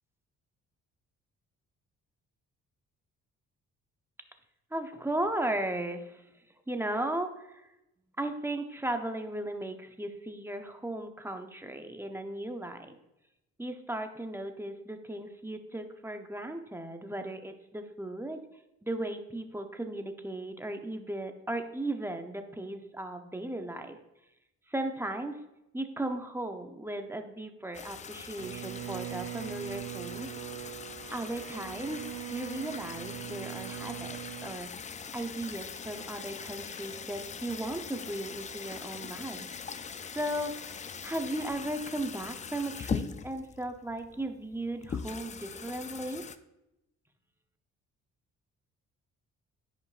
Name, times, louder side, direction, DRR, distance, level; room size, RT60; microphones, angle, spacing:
voice 1, 4.7-6.2 6.7-7.6 8.2-13.0 13.6-18.4 18.8-24.0 24.7-25.4 25.7-30.3 31.1-34.7 35.1-39.5 40.1-46.3, right 1 dB, 10° right, 6 dB, 0.7 m, -36 dB
sound 1, 27.7-46.4, left 6 dB, 25° left, 0.3 m, -41 dB
Bowed string instrument, 28.4-34.7, right 16 dB, 75° right, 0.5 m, -41 dB
13.0 x 5.2 x 2.5 m, 0.91 s
cardioid pair, 90°, 30 cm